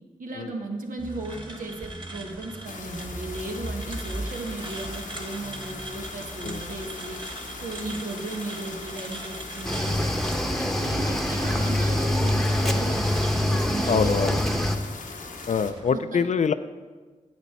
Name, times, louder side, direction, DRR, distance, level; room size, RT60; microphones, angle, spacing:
voice 1, 0.2-7.2 7.6-14.6 15.9-16.3, right 2 dB, 85° right, 2 dB, 1.3 m, -36 dB
sound 1, 1.0-15.9, right 1 dB, 35° right, 1.5 m, -39 dB
sound 2, 2.6-15.7, left 4 dB, 85° left, 0.9 m, -40 dB
Cricket / Waves surf, 9.6-14.8, left 1 dB, ahead, 0.9 m, -25 dB
voice 2, 13.9-14.4 15.5-16.5, left 6 dB, 60° left, 11 dB, 0.4 m, -24 dB
9.3 x 8.1 x 4.4 m, 1.3 s
cardioid pair, 45°, 13 cm